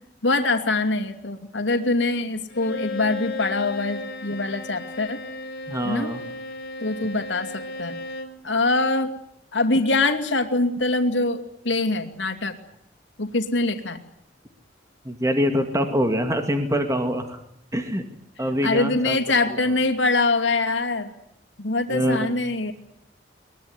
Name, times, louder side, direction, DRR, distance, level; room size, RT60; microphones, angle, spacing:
voice 1, 0.2-5.2 5.8-6.1 6.8-8.0 8.4-9.1 9.5-12.6 13.2-14.0 18.6-21.1 21.6-22.7, left 2 dB, 85° left, 7 dB, 2.6 m, -23 dB
Bowed string instrument, 2.5-8.4, left 3 dB, 60° left, 4.2 m, -35 dB
voice 2, 5.7-6.2 15.1-17.4 17.7-18.0 18.4-19.2 19.5-19.7 21.9-22.3, equal, 15° right, 6 dB, 2.3 m, -24 dB
22.5 x 21.5 x 9.7 m, 0.75 s
head